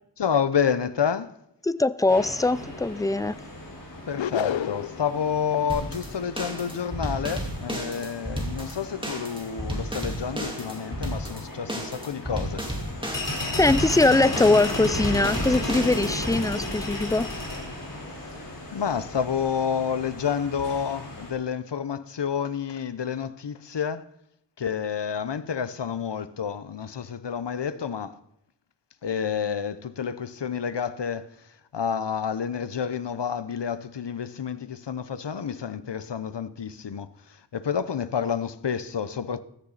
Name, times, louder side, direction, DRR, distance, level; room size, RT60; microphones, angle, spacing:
voice 1, 0.2-1.3 4.1-12.6 18.7-24.1 24.6-28.2 29.0-39.4, left 7 dB, 65° left, 0.9 m, -29 dB
voice 2, 1.6-3.4 13.6-17.3, left 2 dB, 10° left, 0.5 m, -22 dB
sound 1, 2.1-21.3, left 2 dB, 45° left, 4.3 m, -35 dB
sound 2, 4.2-5.1, left 10 dB, 85° left, 0.6 m, -28 dB
sound 3, 5.7-16.4, right 1 dB, 10° right, 3.6 m, -33 dB
16.0 x 13.5 x 4.2 m
wide cardioid pair, 65°, 45 cm